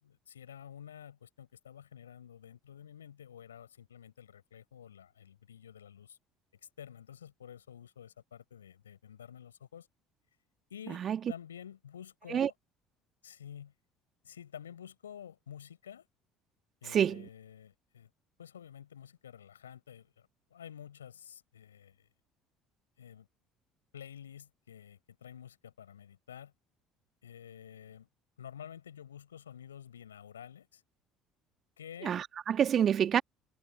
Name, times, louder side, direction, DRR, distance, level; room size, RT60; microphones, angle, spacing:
voice 1, 0.0-6.2 6.8-9.9 10.7-12.5 13.2-13.7 14.2-16.1 16.8-18.1 18.4-22.1 23.0-23.3 23.9-26.5 27.2-28.1 28.4-30.8 31.8-32.2, left 9 dB, 80° left, 4.9 m, -50 dB
voice 2, 10.9-11.2 12.3-12.5 16.9-17.3 32.0-33.2, right 9 dB, 40° right, 1.7 m, -28 dB
figure-of-eight pair, 60°, 0 cm